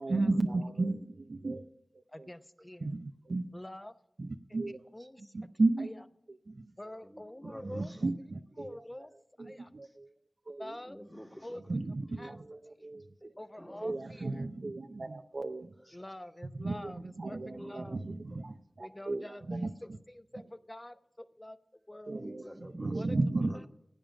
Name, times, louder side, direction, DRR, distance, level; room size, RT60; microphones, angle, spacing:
voice 1, 0.0-2.3 2.8-3.5 4.2-4.8 5.3-5.9 6.5-6.7 7.4-8.8 9.4-10.1 10.5-10.8 11.7-13.3 13.8-15.7 16.6-20.0 22.1-22.4 22.7-23.6, right 2 dB, 70° right, 0.6 m, -34 dB
voice 2, 2.1-2.9 3.5-3.9 4.7-5.3 5.8-6.0 6.8-7.9 8.6-9.1 9.4-9.7 10.6-11.0 11.4-11.6 12.2-12.4 12.8-12.9 13.4-14.5 15.9-18.0 18.8-19.7 20.1-22.3 22.9-23.2, left 1 dB, 25° left, 0.7 m, -47 dB
voice 3, 6.8-8.0 10.8-11.8 12.2-12.5 13.2-14.2 15.8-16.0 17.3-17.9 18.3-18.4 19.8-19.9 22.2-23.1 23.3-23.7, equal, ahead, 1.2 m, -51 dB
16.0 x 8.9 x 6.1 m
cardioid pair, 40°, 0 cm